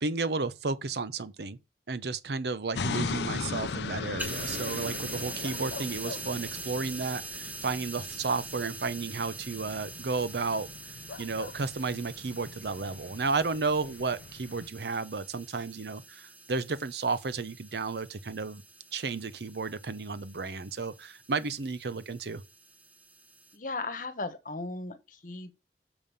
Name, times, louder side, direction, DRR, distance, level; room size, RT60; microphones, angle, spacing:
voice 1, 0.0-1.6 1.9-10.7 11.2-18.6 18.9-22.4, right 4 dB, 65° right, 0.7 m, -33 dB
sound 1, 2.7-14.7, left 4 dB, 75° left, 0.5 m, -39 dB
sound 2, 4.2-23.5, right 2 dB, 10° right, 1.4 m, -44 dB
voice 2, 23.5-25.6, left 3 dB, 50° left, 1.3 m, -37 dB
7.0 x 5.4 x 5.5 m
head